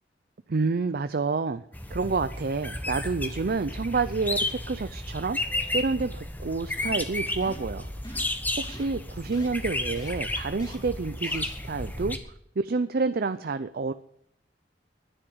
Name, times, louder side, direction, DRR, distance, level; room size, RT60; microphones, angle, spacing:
voice 1, 0.5-5.4 5.7-8.3 8.6-12.2 12.6-13.9, right 4 dB, 55° right, 11 dB, 0.5 m, -29 dB
sound 1, 1.7-12.2, left 2 dB, 10° left, 1.2 m, -33 dB
sound 2, 6.8-7.1 7.4-7.7 8.0-8.4 8.7-8.9 9.3-9.5 10.0-10.1 10.6-10.8 11.2-11.4, equal, 25° left, 3.4 m, -44 dB
10.5 x 9.9 x 8.9 m, 0.71 s
head